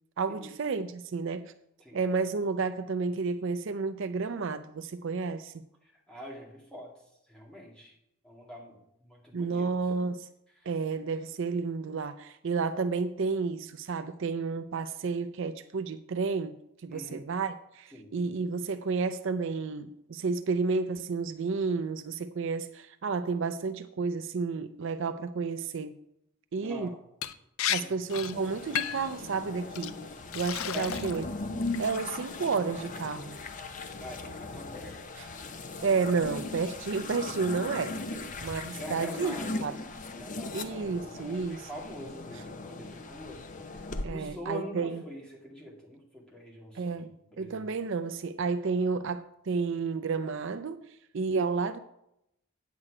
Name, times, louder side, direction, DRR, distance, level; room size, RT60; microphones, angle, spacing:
voice 1, 0.2-1.5 1.9-5.6 9.3-10.3 10.7-16.6 16.8-26.0 26.5-26.9 27.7-30.0 30.3-31.2 31.8-33.4 35.8-38.0 38.4-39.3 39.6-39.7 40.5-41.7 44.0-45.0 46.7-50.8 51.1-51.8, right 4 dB, 60° right, 0.4 m, -31 dB
voice 2, 5.8-6.9 7.3-7.9 8.2-9.7 10.6-10.7 16.9-17.2 17.9-18.1 26.6-27.0 27.8-27.9 30.7-31.2 34.0-35.0 38.1-38.3 38.8-39.8 40.2-47.0 47.3-47.6, equal, 5° left, 2.2 m, -44 dB
Liquid, 27.2-27.3 27.6-27.8 28.1-28.3 28.8-29.1 29.7-29.9 30.3-31.2 31.6-32.0, left 10 dB, 75° left, 0.5 m, -32 dB
sound 1, 28.3-44.1, left 2 dB, 35° left, 0.7 m, -39 dB
8.7 x 8.3 x 4.8 m
head